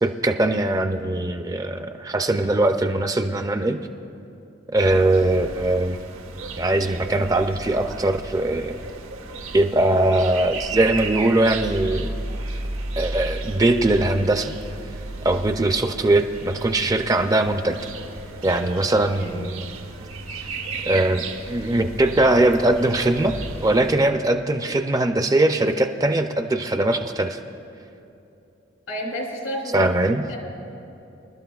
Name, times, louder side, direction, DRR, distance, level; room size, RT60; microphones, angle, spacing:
voice 1, 0.0-3.8 4.7-6.0 6.6-8.8 9.5-12.1 13.0-14.5 15.2-17.8 18.4-19.7 20.8-23.3 23.6-27.4 29.7-30.2, right 2 dB, 15° right, 7 dB, 0.4 m, -21 dB
sound 1, 4.8-24.0, right 2 dB, 85° right, 0.9 m, -34 dB
voice 2, 19.2-19.5 28.9-29.9 30.3-30.4, equal, 85° left, -1 dB, 3.1 m, -30 dB
26.0 x 12.0 x 2.3 m, 2.8 s
head